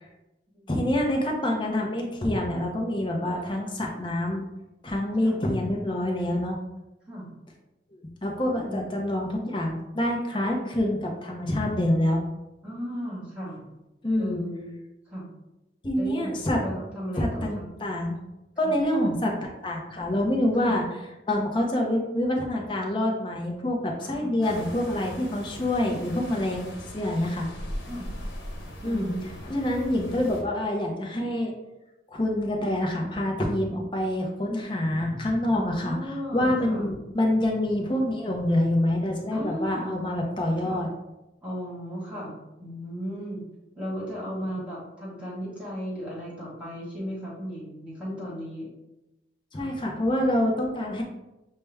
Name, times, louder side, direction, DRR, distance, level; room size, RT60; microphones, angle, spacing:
voice 1, 0.7-4.4 4.8-6.6 8.2-12.2 14.0-14.4 15.8-16.6 17.2-18.2 18.6-20.9 21.3-27.5 28.8-29.1 29.5-31.5 32.1-40.9 49.5-51.0, left 1 dB, 25° left, 0 dB, 0.7 m, -26 dB
voice 2, 3.2-3.5 3.9-4.0 5.2-5.4 7.1-7.3 8.6-8.9 12.6-13.6 14.2-14.7 15.1-15.3 15.9-17.7 18.6-18.7 20.6-20.8 24.0-24.3 27.8-28.1 28.8-29.3 35.5-36.9 39.3-40.0 40.6-40.8 41.4-43.4 43.7-48.7 49.5-49.7, equal, 5° right, -7 dB, 1.4 m, -36 dB
sound 1, 24.4-30.4, equal, 75° left, 1.0 m, -39 dB
6.6 x 2.2 x 3.4 m, 0.97 s
head